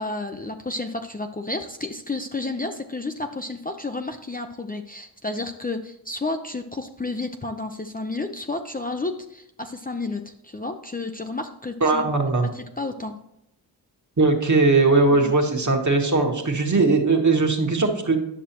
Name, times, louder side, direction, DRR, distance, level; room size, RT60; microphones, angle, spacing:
voice 1, 0.0-12.0 12.5-13.2 15.1-15.3 16.8-17.0, left 2 dB, 20° left, 5 dB, 0.5 m, -31 dB
voice 2, 11.8-12.5 14.2-18.2, right 3 dB, 40° right, 2 dB, 1.4 m, -19 dB
10.0 x 6.1 x 3.0 m, 0.79 s
cardioid pair, 55°, 43 cm